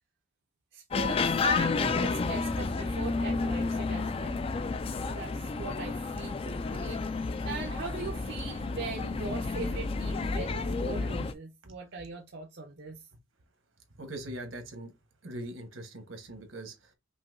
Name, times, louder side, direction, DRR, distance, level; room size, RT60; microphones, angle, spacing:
voice 1, 0.7-4.4 5.0-7.0 7.4-13.1, right 4 dB, 55° right, 0.6 m, -40 dB
sound 1, 0.9-11.3, left 4 dB, 30° left, 0.3 m, -31 dB
voice 2, 14.0-14.9 15.2-16.9, right 1 dB, 75° right, 1.3 m, -41 dB
5.5 x 2.7 x 2.6 m
head